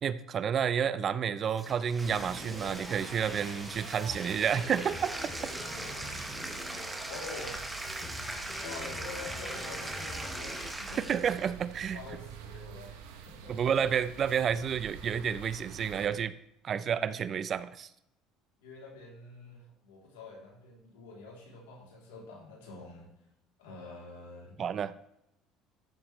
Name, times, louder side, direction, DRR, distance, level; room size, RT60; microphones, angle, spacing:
voice 1, 0.0-5.1 11.1-12.0 13.5-16.3 16.6-17.9 24.6-24.9, right 7 dB, 45° right, 15 dB, 0.6 m, -30 dB
Bathtub (filling or washing), 1.5-11.5, right 1 dB, 10° right, 1.4 m, -41 dB
sound 1, 2.0-16.1, right 8 dB, 85° right, 1.2 m, -48 dB
sound 2, 2.2-10.7, left 2 dB, 25° left, 2.9 m, -45 dB
voice 2, 5.8-6.4 7.1-7.7 8.6-11.0 11.9-13.6 18.6-23.1 23.6-24.6, left 3 dB, 90° left, -1 dB, 3.2 m, -47 dB
13.5 x 7.2 x 3.2 m, 0.83 s
supercardioid pair, 80°, 0 cm